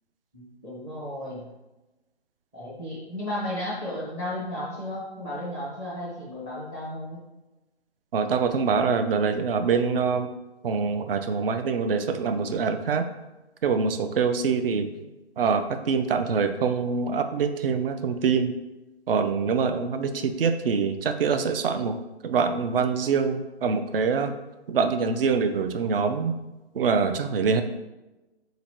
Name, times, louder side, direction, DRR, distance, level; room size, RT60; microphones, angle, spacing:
voice 1, 0.3-1.4 2.5-7.2, left 1 dB, 15° right, -6 dB, 0.6 m, -34 dB
voice 2, 8.1-10.3 10.6-13.1 13.6-14.9 15.4-18.5 19.1-21.9 22.2-24.3 24.7-26.3 26.7-27.6, right 5 dB, 60° right, 8 dB, 0.5 m, -24 dB
3.9 x 2.9 x 4.4 m, 1.0 s
hypercardioid pair, 150°, 33 cm